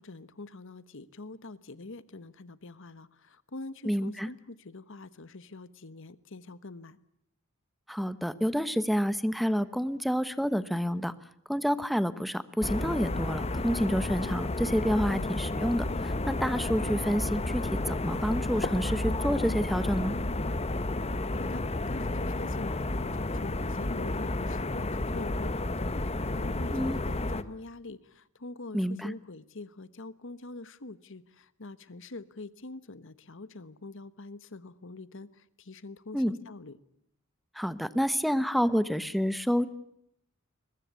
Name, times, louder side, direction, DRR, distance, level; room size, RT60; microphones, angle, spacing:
voice 1, 0.0-7.0 21.3-36.8, left 2 dB, 65° left, 15 dB, 1.2 m, -45 dB
voice 2, 3.8-4.3 7.9-11.1 11.5-20.1 26.7-27.0 28.7-29.1 36.1-36.4 37.6-39.7, equal, ahead, 13 dB, 1.1 m, -29 dB
sound 1, 12.6-27.4, left 2 dB, 30° left, 1.1 m, -31 dB
22.5 x 21.0 x 8.2 m, 0.75 s
head